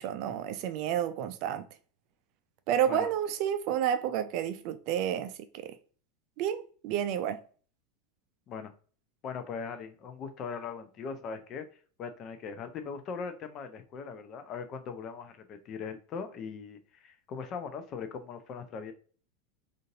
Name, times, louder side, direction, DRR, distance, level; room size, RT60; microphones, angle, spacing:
voice 1, 0.0-1.6 2.7-5.7 6.4-7.4, right 9 dB, 50° right, 0.4 m, -30 dB
voice 2, 9.2-11.6 12.0-18.9, left 5 dB, 40° left, 0.5 m, -40 dB
3.8 x 2.5 x 2.6 m
figure-of-eight pair, 85°, 0 cm